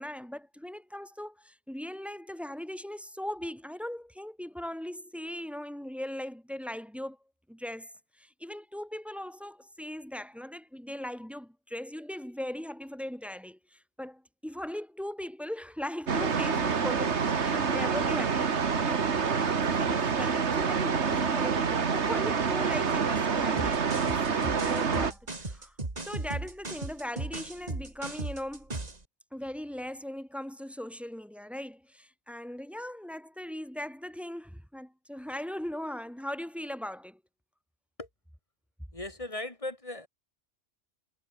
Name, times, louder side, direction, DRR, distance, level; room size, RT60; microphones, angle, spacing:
voice 1, 0.0-7.2 7.5-7.9 8.2-24.2 24.6-25.7 26.0-28.7 29.3-37.2, left 1 dB, ahead, 1.2 m, -39 dB
sound 1, 16.1-25.1, right 6 dB, 90° right, 1.8 m, -27 dB
sound 2, 23.6-29.0, right 2 dB, 35° right, 2.5 m, -36 dB
voice 2, 38.9-40.1, left 2 dB, 30° left, 3.0 m, -37 dB
omnidirectional pair, 1.1 m